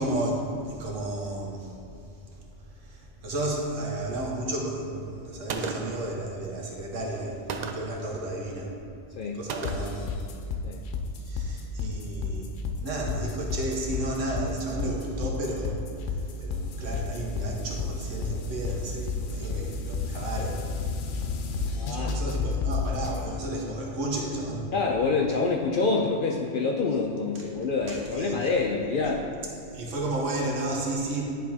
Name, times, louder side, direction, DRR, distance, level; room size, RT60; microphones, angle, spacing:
voice 1, 0.0-1.7 2.8-7.4 7.7-8.8 9.3-10.1 11.3-12.5 12.8-15.8 16.1-20.7 21.9-24.7 27.9-28.3 29.7-31.2, right 1 dB, 90° right, -1 dB, 1.4 m, -32 dB
Gunshot gunfire, 5.5-6.1 7.5-8.0 9.5-10.1, right 4 dB, 70° right, 0.4 m, -34 dB
sound 1, 9.6-23.2, left 4 dB, 85° left, 1.0 m, -31 dB
voice 2, 21.7-22.2 24.7-29.4, left 4 dB, 60° left, 0 dB, 0.6 m, -26 dB
10.5 x 3.6 x 4.2 m, 2.7 s
omnidirectional pair, 1.3 m